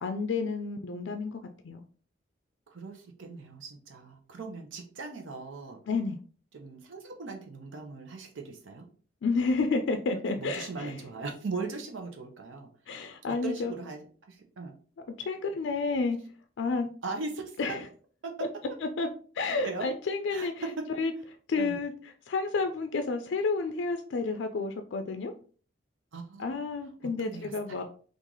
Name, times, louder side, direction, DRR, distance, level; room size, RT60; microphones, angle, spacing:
voice 1, 0.0-1.8 5.9-6.2 9.2-10.9 12.9-13.7 15.2-16.2 16.6-16.9 17.6-17.8 18.8-19.1 19.4-20.5 21.0-21.1 21.5-25.3 26.4-27.8, left 4 dB, 75° left, 6 dB, 0.4 m, -30 dB
voice 2, 2.7-5.8 6.5-8.9 10.3-14.7 17.0-17.8 18.2-18.3 19.6-19.9 20.3-20.5 21.6-21.8 26.1-26.6 27.2-27.8, right 3 dB, 90° right, 3 dB, 0.7 m, -39 dB
3.7 x 2.5 x 3.0 m, 0.42 s
head